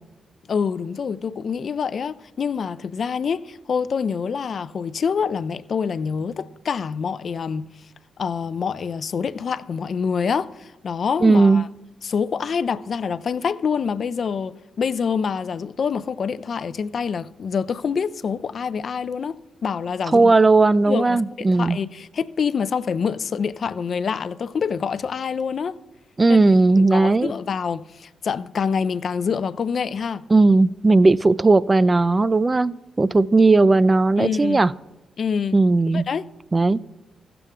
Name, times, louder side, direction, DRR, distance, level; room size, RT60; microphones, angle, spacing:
voice 1, 0.5-7.7 8.2-11.7 12.0-20.3 20.9-25.8 26.3-26.4 26.8-30.3 34.2-34.6 35.2-35.6 35.9-36.3, left 6 dB, 60° left, 0.4 m, -26 dB
voice 2, 11.2-11.6 20.1-21.8 26.2-27.3 30.3-34.7 35.5-36.1 36.5-36.8, right 3 dB, 30° right, 0.3 m, -16 dB
15.5 x 6.8 x 3.6 m
hypercardioid pair, 45°, 0 cm